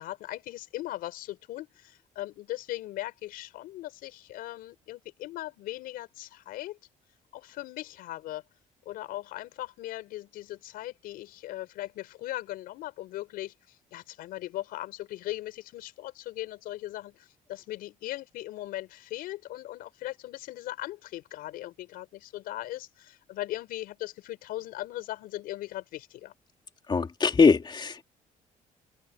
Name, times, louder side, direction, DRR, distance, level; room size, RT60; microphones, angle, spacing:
voice 1, 0.0-6.8 7.3-8.4 8.9-26.3, left 15 dB, 85° left, 5.4 m, -39 dB
voice 2, 26.9-28.0, left 4 dB, 30° left, 2.8 m, -22 dB
open air
cardioid pair, 100°, 15 cm